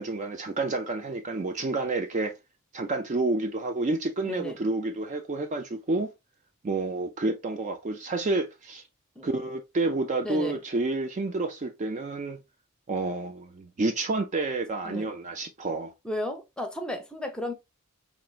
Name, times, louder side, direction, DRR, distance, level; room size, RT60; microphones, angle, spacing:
voice 1, 0.0-2.3 2.7-6.1 6.6-8.8 9.2-12.4 12.9-15.9, right 2 dB, 35° right, 0.4 m, -29 dB
voice 2, 4.2-4.6 9.1-9.3 10.2-10.6 14.8-15.1 16.0-17.5, left 1 dB, 5° left, 0.7 m, -34 dB
4.3 x 2.9 x 2.3 m
head